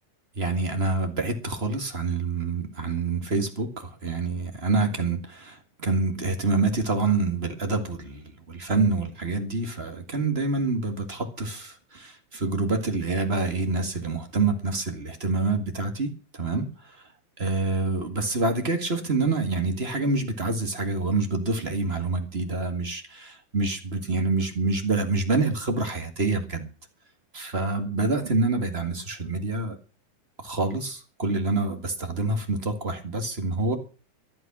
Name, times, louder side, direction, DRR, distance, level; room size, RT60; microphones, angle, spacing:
voice 1, 0.4-17.1 17.4-26.7 27.3-29.8 30.4-33.8, right 3 dB, 25° right, 6 dB, 1.6 m, -27 dB
14.5 x 11.5 x 6.1 m, 0.37 s
omnidirectional pair, 3.6 m